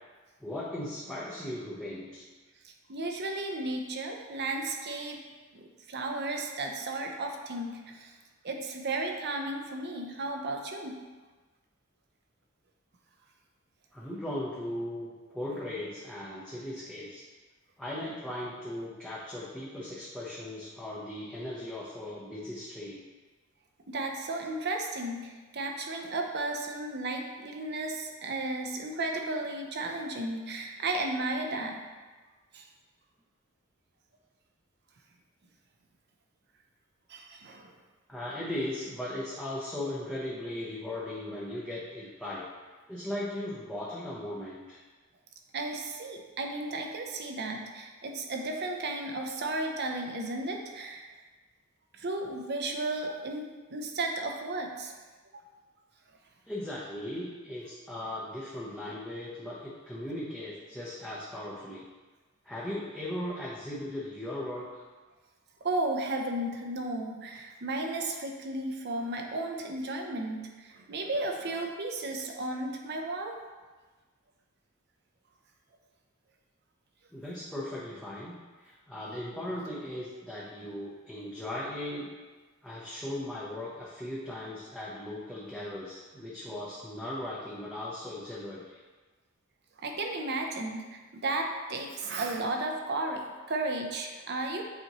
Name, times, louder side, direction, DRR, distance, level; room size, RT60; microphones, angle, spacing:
voice 1, 0.4-2.2 13.9-17.2 17.8-23.0 38.1-42.4 42.9-44.8 56.5-61.9 62.4-64.8 77.1-82.1 82.6-88.8, left 1 dB, 5° left, -8 dB, 0.8 m, -38 dB
voice 2, 2.6-5.2 5.5-8.1 8.4-11.0 23.9-31.8 32.5-32.6 37.1-37.7 45.5-51.1 51.9-54.9 58.8-58.9 65.6-73.4 89.8-94.6, right 2 dB, 50° right, 3 dB, 0.7 m, -34 dB
8.1 x 4.3 x 3.0 m, 1.3 s
head